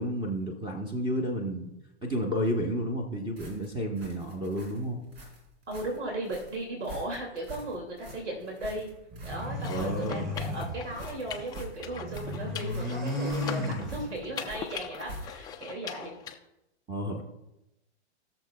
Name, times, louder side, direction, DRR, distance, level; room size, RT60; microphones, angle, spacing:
voice 1, 0.0-1.7 2.0-5.0 9.7-10.3 16.9-17.2, equal, 15° right, -2 dB, 1.1 m, -31 dB
sound 1, 3.4-15.6, right 2 dB, 60° right, 3.4 m, -46 dB
voice 2, 5.7-8.9 9.2-16.2, right 1 dB, 85° right, 0 dB, 2.5 m, -36 dB
sound 2, 9.1-11.5 11.8-14.4, left 1 dB, 30° right, 3.8 m, -34 dB
sound 3, 9.5-16.3, left 9 dB, 10° left, 0.4 m, -42 dB
20.0 x 6.8 x 2.3 m, 0.91 s
hypercardioid pair, 125°, 34 cm